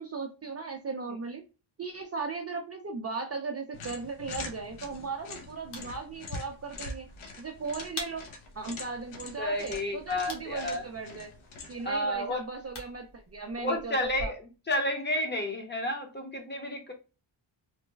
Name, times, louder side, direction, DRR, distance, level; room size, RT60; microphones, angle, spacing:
voice 1, 0.0-1.4 1.8-7.1 7.4-8.2 8.6-11.3 11.7-14.3, right 4 dB, 30° right, 3 dB, 0.4 m, -37 dB
sound 1, 3.7-12.0, left 3 dB, 75° left, 0.8 m, -44 dB
sound 2, 4.2-14.3, left 1 dB, 55° left, 1.2 m, -47 dB
voice 2, 9.4-10.8 11.8-12.4 13.6-14.4 14.7-16.9, left 1 dB, 20° left, 2 dB, 0.7 m, -31 dB
3.2 x 2.1 x 3.2 m, 0.31 s
wide cardioid pair, 130°, 49 cm